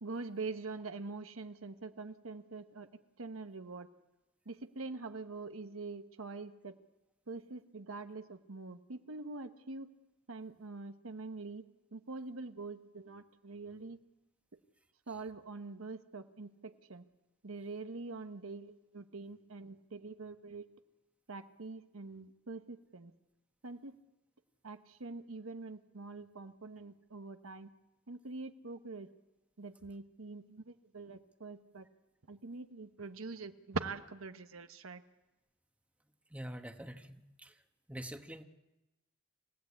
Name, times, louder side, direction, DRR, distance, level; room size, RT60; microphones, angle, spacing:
voice 1, 0.0-2.9 3.2-3.9 4.5-6.8 7.3-9.9 10.3-11.6 11.9-14.0 15.1-17.0 17.4-20.6 21.3-23.1 23.6-23.9 24.6-27.7 28.1-29.1 29.6-31.9 32.3-35.0, right 3 dB, 90° right, 9 dB, 1.1 m, -44 dB
voice 2, 36.3-37.5 37.9-38.4, right 1 dB, 5° right, 7 dB, 1.2 m, -45 dB
27.5 x 16.0 x 8.5 m, 1.0 s
head